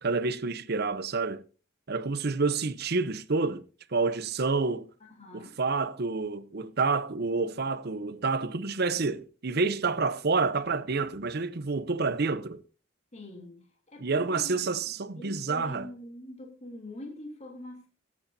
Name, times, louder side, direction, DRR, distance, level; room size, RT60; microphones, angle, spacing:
voice 1, 0.0-1.4 1.9-3.6 3.9-4.9 5.3-12.6 14.0-15.9, right 4 dB, 50° right, 0.7 m, -28 dB
voice 2, 5.0-5.5 13.1-13.6 13.9-14.6 15.1-17.9, left 1 dB, 35° left, 3.0 m, -44 dB
24.5 x 8.6 x 2.7 m
head